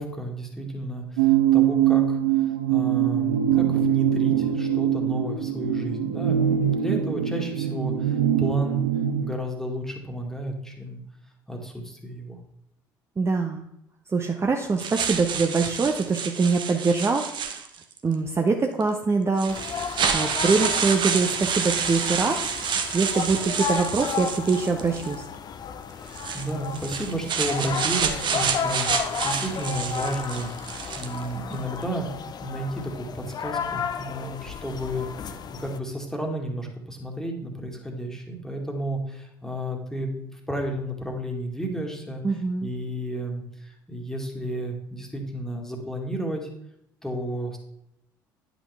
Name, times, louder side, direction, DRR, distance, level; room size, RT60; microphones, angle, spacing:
voice 1, 0.0-8.8 9.2-11.0 11.5-12.4 25.9-32.1 32.4-42.2 42.6-46.5 47.0-47.6, right 1 dB, 5° left, 2 dB, 1.9 m, -32 dB
sound 1, 1.2-9.3, right 10 dB, 70° right, 0.6 m, -23 dB
voice 2, 13.2-13.6 14.1-17.7 18.0-22.4 22.9-25.2 42.2-42.7, right 4 dB, 25° right, 3 dB, 0.8 m, -24 dB
sound 2, 14.8-18.0 18.8-18.9 19.4-25.1 26.1-31.3, right 7 dB, 45° right, 0.9 m, -29 dB
sound 3, 19.5-35.8, left 7 dB, 40° left, 0.6 m, -33 dB
9.8 x 6.0 x 3.4 m, 0.79 s
hypercardioid pair, 60°, 11 cm